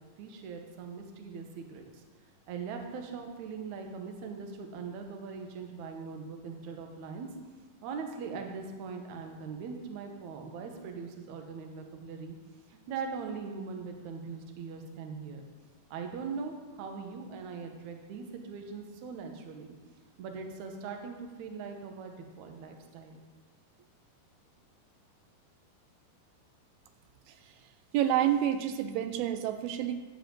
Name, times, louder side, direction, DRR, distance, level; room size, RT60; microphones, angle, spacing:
voice 1, 0.2-2.0 2.5-7.3 7.8-12.4 12.7-15.5 15.9-19.7 20.2-23.2, right 5 dB, 65° right, 3 dB, 2.0 m, -41 dB
voice 2, 27.9-29.9, right 11 dB, 85° right, 9 dB, 2.5 m, -28 dB
12.0 x 4.8 x 7.7 m, 1.3 s
omnidirectional pair, 4.4 m